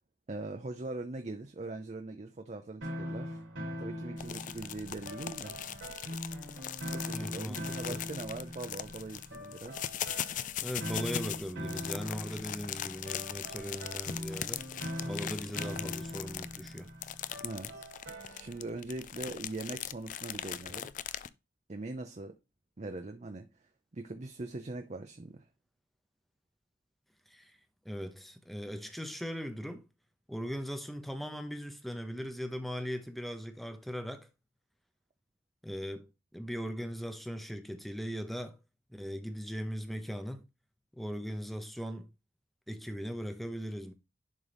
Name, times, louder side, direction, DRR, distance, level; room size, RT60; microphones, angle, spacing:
voice 1, 0.3-3.4 3.8-5.6 6.9-9.8 17.4-17.9 18.3-20.9 21.7-22.4 22.8-23.5 23.9-25.5, right 2 dB, 35° right, 0.5 m, -41 dB
sound 1, 2.8-18.7, equal, 85° right, 3.7 m, -42 dB
sound 2, 4.2-21.3, left 10 dB, 40° left, 0.3 m, -40 dB
voice 2, 7.1-8.0 10.6-14.6 15.0-16.9 27.3-27.6 27.8-29.8 30.3-34.3 35.6-36.1 36.3-38.6 38.9-40.4 40.9-42.1 42.7-43.9, equal, ahead, 0.7 m, -39 dB
11.0 x 3.9 x 3.4 m
head